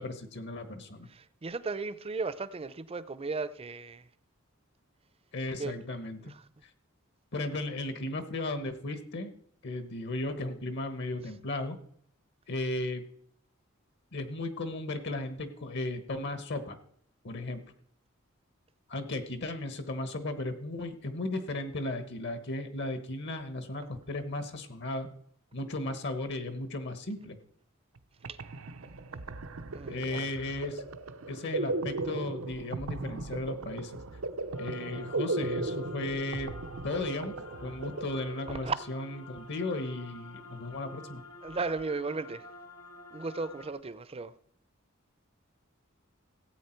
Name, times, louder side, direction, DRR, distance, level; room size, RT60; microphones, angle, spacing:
voice 1, 0.0-1.1 5.3-6.3 7.3-9.3 9.6-11.8 12.5-13.0 14.1-16.8 17.2-17.6 18.9-25.1 25.5-27.4 29.9-30.8 31.3-33.9 34.6-36.5 36.8-37.4 37.6-41.2, left 2 dB, 60° left, 1.2 m, -35 dB
voice 2, 1.1-4.0 5.6-5.7 6.2-6.3 28.3-28.4 29.7-30.3 38.6-38.8 41.4-42.4 43.1-44.3, right 4 dB, 30° right, 0.6 m, -35 dB
sound 1, 28.0-28.1 28.2-38.8, right 2 dB, 75° right, 0.7 m, -37 dB
sound 2, 34.5-43.7, left 2 dB, 80° left, 2.3 m, -49 dB
16.5 x 8.4 x 4.5 m
head